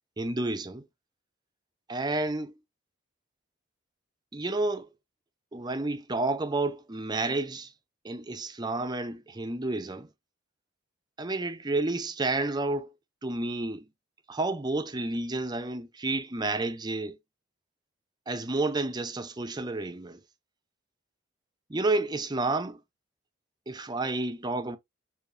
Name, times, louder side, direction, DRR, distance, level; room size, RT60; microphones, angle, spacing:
voice 1, 0.2-0.8 1.9-2.5 4.3-4.9 5.5-7.7 8.0-10.1 11.2-12.9 13.2-13.9 14.3-17.2 18.3-20.2 21.7-22.8 23.7-24.8, right 2 dB, 20° right, 0.5 m, -30 dB
6.7 x 2.7 x 2.5 m
head